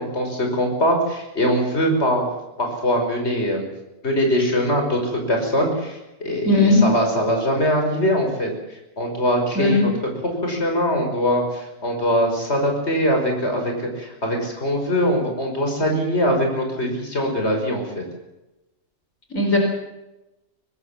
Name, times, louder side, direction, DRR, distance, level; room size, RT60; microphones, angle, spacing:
voice 1, 0.0-2.3 2.6-3.6 4.0-8.5 9.0-9.9 10.2-18.0, equal, 55° left, 2 dB, 5.6 m, -22 dB
voice 2, 6.4-6.8 9.5-9.9 19.3-19.6, left 2 dB, 80° left, 2 dB, 5.0 m, -17 dB
25.0 x 19.5 x 7.3 m, 0.97 s
omnidirectional pair, 1.4 m